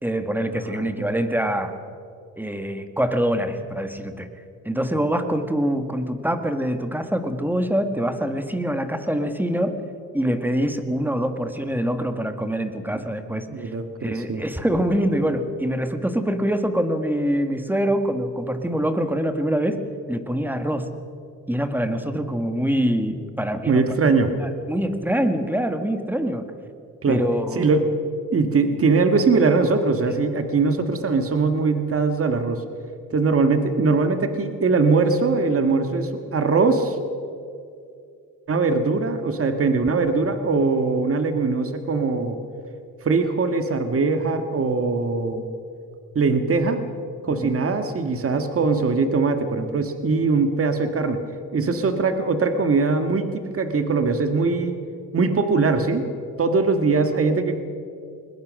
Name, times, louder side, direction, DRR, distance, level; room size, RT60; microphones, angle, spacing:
voice 1, 0.0-1.7 2.4-4.3 4.6-9.8 10.1-13.7 14.0-20.9 21.5-23.8 24.4-26.5 27.1-27.7 47.3-47.5, equal, 5° right, 8 dB, 1.8 m, -24 dB
voice 2, 0.5-1.2 13.5-14.4 23.7-24.3 27.0-27.2 27.6-27.9 28.3-32.6 33.1-37.0 38.5-42.4 43.0-45.4 46.2-46.8 47.2-51.2 51.5-54.8 55.1-56.1 56.4-57.6, right 4 dB, 40° right, 8 dB, 1.8 m, -21 dB
21.0 x 21.0 x 6.4 m, 2.5 s
cardioid pair, 95°, 33 cm